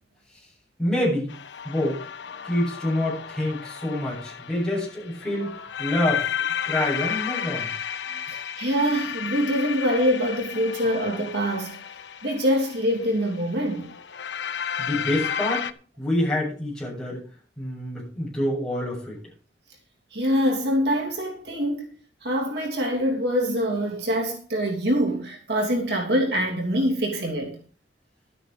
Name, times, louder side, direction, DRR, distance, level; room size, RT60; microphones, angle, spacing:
voice 1, 0.8-1.3 1.6-2.0 2.4-6.4 6.6-7.9 14.8-15.7 16.0-17.2 17.6-19.2, left 1 dB, 5° left, 7.7 m, -27 dB
sound 1, 1.3-15.7, left 8 dB, 80° left, 0.8 m, -33 dB
voice 2, 8.3-11.8 12.2-13.9 20.1-21.8 22.2-27.6, equal, 65° right, 3.0 m, -24 dB
12.0 x 9.1 x 5.2 m
head